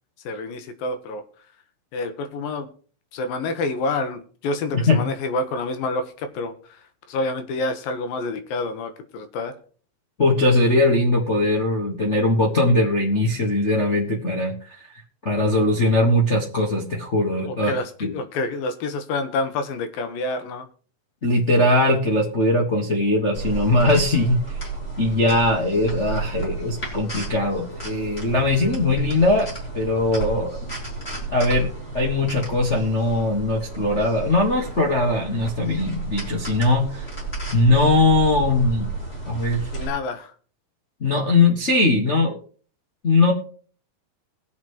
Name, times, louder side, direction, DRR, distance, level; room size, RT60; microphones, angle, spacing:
voice 1, 0.2-1.2 1.9-2.7 3.1-9.5 17.5-20.7 39.7-40.3, left 2 dB, 90° left, 8 dB, 3.0 m, -28 dB
voice 2, 10.2-14.5 14.8-14.9 15.2-17.7 18.0-18.1 21.2-24.4 25.0-30.6 31.3-31.7 31.9-37.0 37.5-38.9 39.3-39.7 41.0-42.4 43.0-43.3, left 2 dB, 65° left, -2 dB, 0.7 m, -20 dB
sound 1, 23.3-39.9, right 3 dB, 20° left, 3.6 m, -32 dB
21.5 x 7.4 x 3.1 m, 0.43 s
omnidirectional pair, 4.0 m